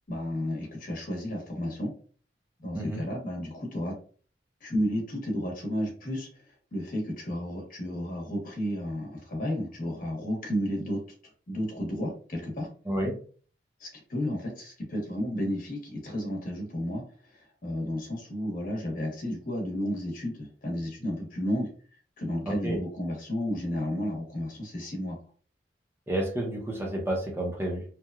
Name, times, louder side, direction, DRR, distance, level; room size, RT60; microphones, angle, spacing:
voice 1, 0.1-1.9 2.6-3.9 4.6-6.3 6.7-11.0 11.5-12.7 13.8-21.7 22.2-25.2, equal, 50° left, 0 dB, 0.9 m, -32 dB
voice 2, 12.9-13.2 22.4-22.8 26.1-27.8, right 1 dB, 15° right, 0 dB, 0.6 m, -30 dB
2.9 x 2.2 x 2.3 m, 0.43 s
head